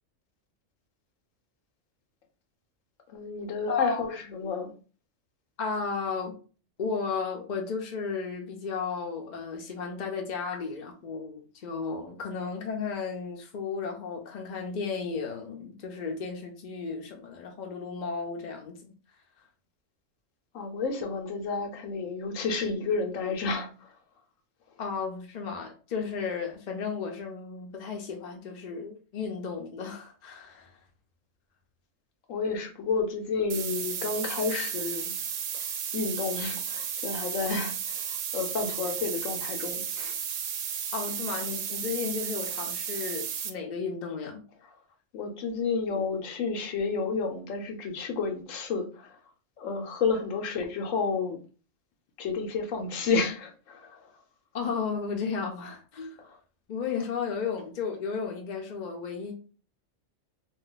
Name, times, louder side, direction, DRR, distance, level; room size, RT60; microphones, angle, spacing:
voice 1, 3.1-4.7 20.5-23.9 32.3-35.1 35.9-40.2 45.1-49.2 49.6-51.4 52.2-54.1 56.2-56.4, left 4 dB, 85° left, 1.1 m, -31 dB
voice 2, 3.7-4.1 5.6-6.3 6.8-18.9 24.8-30.8 40.9-44.4 54.5-56.2 56.7-59.3, left 5 dB, 55° left, 0.5 m, -34 dB
sound 1, 33.5-43.5, right 8 dB, 70° right, 0.8 m, -34 dB
2.6 x 2.3 x 3.8 m
omnidirectional pair, 1.3 m